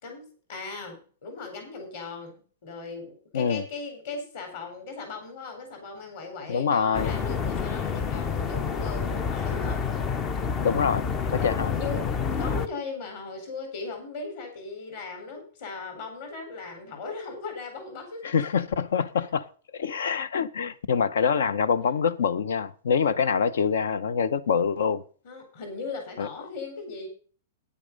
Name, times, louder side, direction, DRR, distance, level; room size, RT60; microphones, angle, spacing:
voice 1, 0.0-9.8 11.3-12.1 12.4-18.3 25.2-27.1, left 4 dB, 40° left, 4.1 m, -38 dB
voice 2, 6.5-7.2 10.6-11.7 18.2-19.5 19.7-25.0 26.2-26.3, left 6 dB, 75° left, 0.8 m, -25 dB
sound 1, 6.9-12.7, left 6 dB, 15° left, 0.4 m, -28 dB
10.0 x 8.4 x 5.3 m
supercardioid pair, 180°, 0 cm